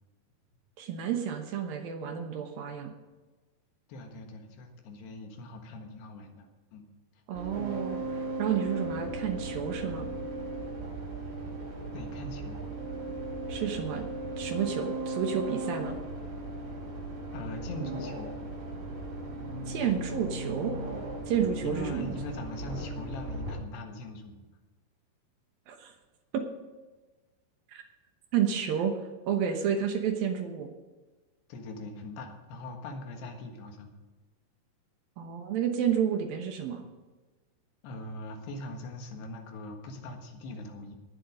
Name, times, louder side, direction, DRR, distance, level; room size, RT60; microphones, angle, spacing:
voice 1, 0.8-2.9 7.3-10.1 13.5-14.1 14.4-16.0 19.7-20.7 21.3-22.2 25.7-25.9 26.3-26.4 27.7-27.8 28.3-29.0 29.3-30.7 35.2-36.8, right 8 dB, 70° right, 5 dB, 2.6 m, -30 dB
voice 2, 3.9-6.9 7.1-7.2 11.9-12.6 17.3-18.3 21.6-24.4 31.5-33.9 37.8-41.0, left 1 dB, 80° left, 4 dB, 3.7 m, -41 dB
sound 1, 7.3-23.5, right 2 dB, 90° right, 6.6 m, -37 dB
19.0 x 7.8 x 5.1 m, 1.2 s
omnidirectional pair, 4.9 m